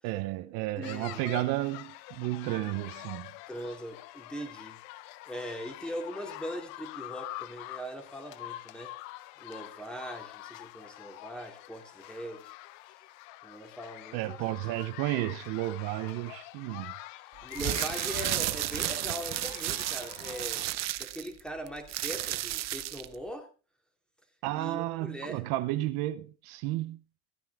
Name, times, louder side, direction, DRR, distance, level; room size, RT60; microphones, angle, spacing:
voice 1, 0.0-3.3 14.1-16.9 24.4-27.0, right 17 dB, 70° right, 0.9 m, -32 dB
sound 1, 0.8-20.7, left 17 dB, 90° left, 0.7 m, -45 dB
voice 2, 0.8-1.2 3.5-4.8 5.3-8.9 9.4-12.5 13.4-14.4 17.4-20.7 21.0-23.5 24.5-25.4, equal, ahead, 2.6 m, -41 dB
sound 2, 17.4-23.1, right 15 dB, 45° right, 0.8 m, -33 dB
15.5 x 9.3 x 3.6 m
cardioid pair, 130°, 37 cm